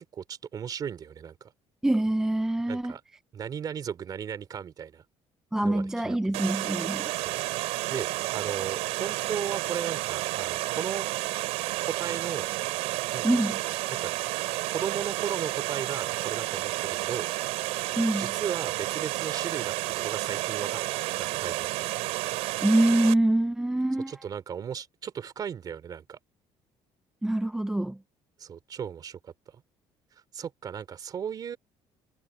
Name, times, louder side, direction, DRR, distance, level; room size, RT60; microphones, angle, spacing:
voice 1, 0.1-1.5 2.7-3.0 3.3-5.0 5.6-6.2 7.1-7.6 7.9-11.1 11.8-12.5 13.1-13.4 13.9-14.1 14.7-17.3 18.2-20.8 21.2-21.9 24.1-26.2 28.4-29.6 30.3-31.6, right 8 dB, 35° right, 3.0 m, -36 dB
voice 2, 1.8-2.9 5.5-7.1 13.2-13.6 18.0-18.3 22.6-24.2 27.2-28.0, right 1 dB, 5° right, 0.4 m, -25 dB
Water, 6.3-23.1, right 19 dB, 90° right, 3.2 m, -31 dB
cardioid pair, 145°, 11 cm